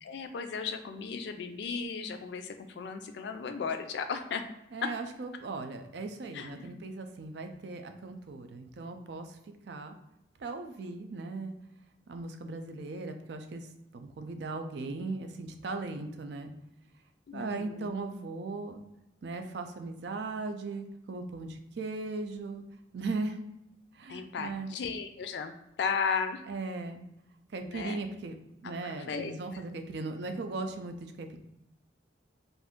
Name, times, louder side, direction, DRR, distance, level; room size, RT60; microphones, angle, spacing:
voice 1, 0.0-4.4 6.3-6.8 17.3-17.9 24.1-25.5 25.8-26.4 27.6-28.0 28.6-29.6, left 5 dB, 70° left, 7 dB, 0.3 m, -35 dB
voice 2, 4.7-9.4 9.7-10.0 10.4-11.5 12.1-13.7 13.9-16.5 17.3-18.8 19.2-22.6 22.9-23.4 23.9-24.7 26.5-27.0 27.5-28.4 28.6-31.4, right 3 dB, 70° right, 6 dB, 0.4 m, -38 dB
2.6 x 2.5 x 3.6 m, 0.88 s
head